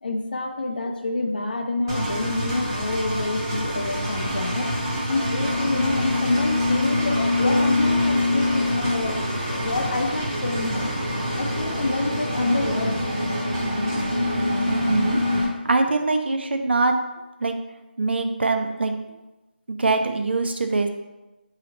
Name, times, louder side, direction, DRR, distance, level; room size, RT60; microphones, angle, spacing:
voice 1, 0.0-4.7 5.1-9.2 9.5-13.0, left 2 dB, 55° left, 4 dB, 0.5 m, -27 dB
Engine, 1.9-15.4, left 1 dB, 25° right, 0.7 m, -25 dB
voice 2, 14.6-15.2 15.6-16.9 17.4-17.5 18.0-19.2 19.7-20.9, right 3 dB, 75° right, 6 dB, 0.4 m, -23 dB
4.1 x 2.8 x 2.8 m, 1.0 s
figure-of-eight pair, 170°, 6 cm